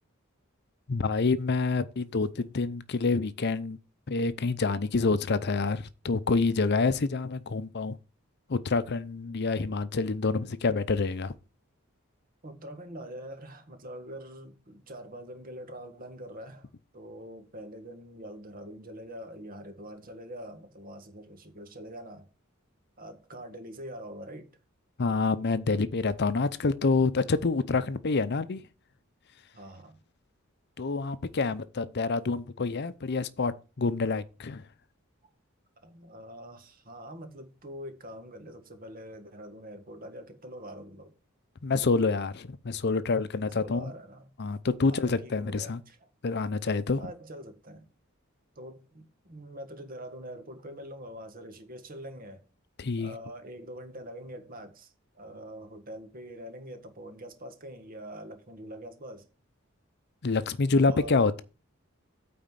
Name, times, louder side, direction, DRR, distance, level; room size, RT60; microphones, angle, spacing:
voice 1, 0.9-3.8 4.1-8.0 8.5-11.3 25.0-28.6 30.8-34.6 41.6-43.9 44.4-45.8 46.2-47.0 52.8-53.1 60.2-61.4, left 4 dB, 50° left, 0.6 m, -27 dB
voice 2, 12.4-22.3 23.0-24.5 29.5-30.0 35.8-41.1 43.6-44.3 44.8-46.1 47.0-47.9 48.5-52.4 53.0-59.3 60.8-61.3, equal, 45° right, 1.7 m, -44 dB
9.1 x 4.3 x 7.4 m
head